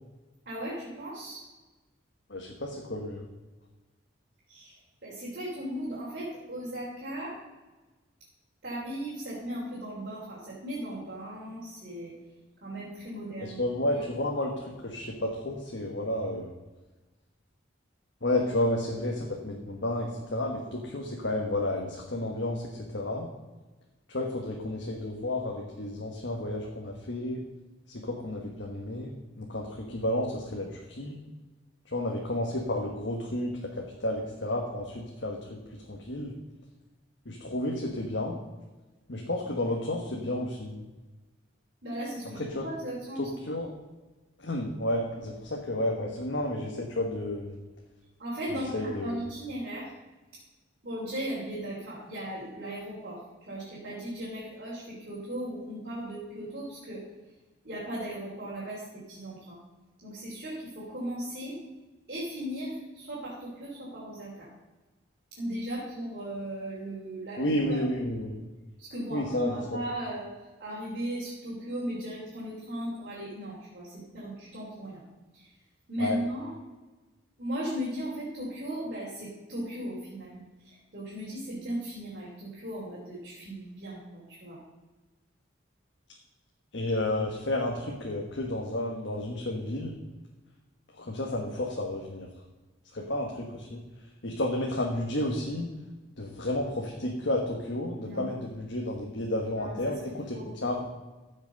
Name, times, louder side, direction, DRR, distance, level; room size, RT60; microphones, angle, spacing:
voice 1, 0.5-1.4 4.5-7.4 8.6-12.1 12.6-14.0 41.8-43.3 48.2-49.9 50.8-57.0 57.6-59.6 60.0-61.6 62.1-64.5 65.3-67.8 68.8-70.2 70.6-75.0 75.3-75.5 75.9-76.5 77.4-84.6 98.0-98.3 99.6-99.9 100.3-100.5, right 1 dB, 50° right, -7 dB, 3.5 m, -37 dB
voice 2, 2.3-3.3 13.4-16.5 18.2-23.3 24.1-27.4 27.9-31.2 31.9-36.3 37.2-38.4 39.1-40.8 42.4-42.6 43.2-43.7 44.4-47.6 48.5-49.2 67.4-68.3 69.1-69.8 76.0-76.2 86.7-90.0 91.0-92.3 92.9-93.8 94.2-95.7 96.2-100.8, left 1 dB, 60° left, 0 dB, 1.4 m, -31 dB
14.5 x 6.1 x 5.3 m, 1.2 s
head